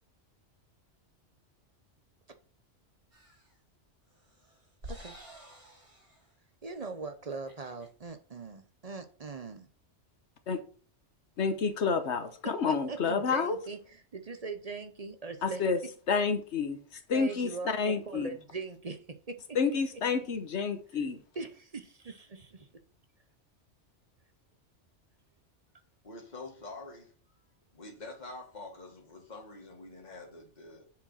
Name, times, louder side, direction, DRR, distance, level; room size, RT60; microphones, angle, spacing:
sound 1, 3.1-3.6 4.1-6.3 6.7-6.9 7.2-7.9, equal, 75° right, 4.1 m, -50 dB
voice 1, 4.8-5.2 6.6-9.7 12.4-15.6 17.1-19.4 21.4-22.6, right 4 dB, 40° right, 0.7 m, -41 dB
voice 2, 11.4-13.6 15.4-15.8 16.1-16.8 17.1-18.3 19.5-21.2, left 5 dB, 70° left, 1.2 m, -29 dB
voice 3, 26.0-27.1 27.7-30.8, left 2 dB, 40° left, 2.0 m, -46 dB
7.2 x 5.0 x 5.6 m
omnidirectional pair, 1.2 m